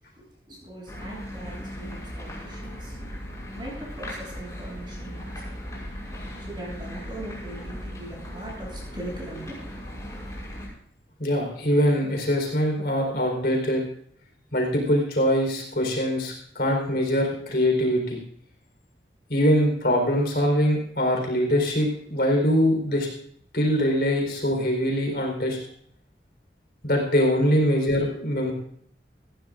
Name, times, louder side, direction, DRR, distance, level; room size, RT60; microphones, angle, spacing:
voice 1, 0.5-3.1 3.5-5.4 5.7-5.8 6.0-9.8 27.6-27.8, right 1 dB, 25° right, -3 dB, 8.0 m, -40 dB
sound 1, 0.9-10.7, equal, 20° left, 5.9 m, -37 dB
voice 2, 11.2-13.8 14.5-18.2 19.3-23.1 23.5-25.6 26.8-28.5, equal, 55° left, 1 dB, 4.3 m, -23 dB
20.0 x 15.5 x 2.6 m, 0.64 s
head